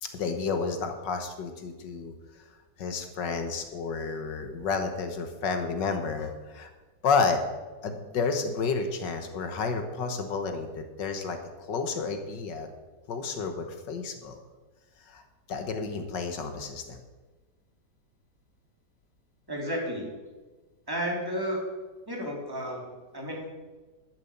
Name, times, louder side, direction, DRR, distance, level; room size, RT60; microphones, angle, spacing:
voice 1, 0.0-2.1 2.8-6.7 7.0-7.4 7.8-11.4 11.7-12.7 13.1-14.4 15.1-15.2 15.5-17.0, left 4 dB, 80° left, 6 dB, 1.9 m, -30 dB
voice 2, 19.5-20.1 20.9-21.7 22.1-23.5, equal, 10° right, -2 dB, 3.0 m, -32 dB
11.5 x 7.7 x 7.2 m, 1.3 s
omnidirectional pair, 1.9 m